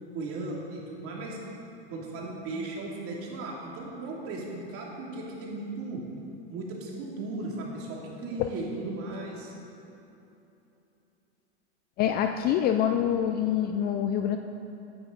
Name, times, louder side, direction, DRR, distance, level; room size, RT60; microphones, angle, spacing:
voice 1, 0.1-1.4 1.9-6.0 6.5-9.5, right 2 dB, 40° right, -3 dB, 2.9 m, -36 dB
voice 2, 12.0-14.4, left 9 dB, 30° left, 6 dB, 0.4 m, -25 dB
15.5 x 9.7 x 3.9 m, 2.9 s
hypercardioid pair, 120°, 35 cm